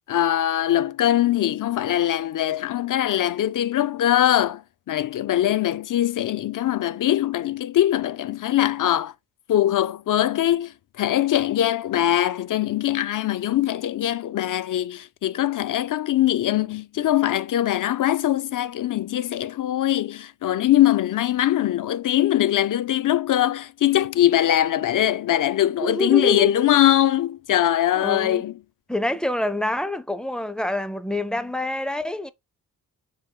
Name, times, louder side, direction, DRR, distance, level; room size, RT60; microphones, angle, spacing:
voice 1, 0.1-4.6 4.9-9.1 9.5-28.5, left 12 dB, 60° left, 0.4 m, -22 dB
voice 2, 25.8-26.7 27.9-28.4 28.9-32.3, left 1 dB, ahead, 0.4 m, -26 dB
4.5 x 2.6 x 3.6 m
cardioid pair, 70°, 37 cm